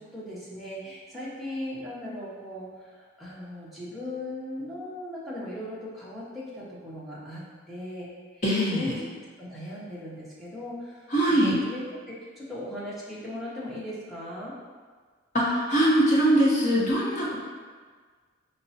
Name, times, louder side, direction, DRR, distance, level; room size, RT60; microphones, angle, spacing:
voice 1, 0.0-8.1 8.3-8.4 8.7-8.9 9.4-11.8 12.1-14.6, left 1 dB, ahead, -8 dB, 0.6 m, -38 dB
voice 2, 8.4-8.9 11.1-11.6 15.3-17.4, right 1 dB, 35° left, -7 dB, 0.8 m, -22 dB
4.9 x 2.0 x 2.8 m, 1.5 s
head